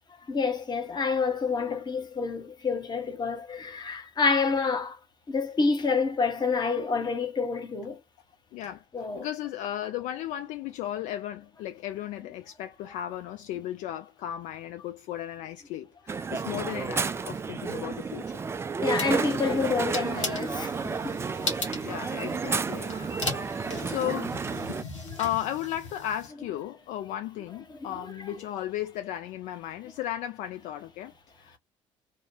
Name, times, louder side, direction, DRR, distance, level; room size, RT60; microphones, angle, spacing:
voice 1, 0.3-5.0 5.3-8.0 8.9-9.3 18.8-20.7 21.0-21.2 22.9-23.4 23.7-24.0 25.0-25.2 27.9-28.0, left 4 dB, 25° left, 0.9 m, -28 dB
voice 2, 8.5-8.8 9.2-18.4 21.8-22.9 23.3-24.4 25.2-31.6, left 12 dB, 55° left, 0.5 m, -35 dB
Crowd, 16.1-24.8, right 5 dB, 15° right, 0.3 m, -31 dB
sound 1, 19.0-26.3, left 3 dB, 85° left, 0.8 m, -38 dB
2.7 x 2.1 x 3.0 m
figure-of-eight pair, 55°, 15 cm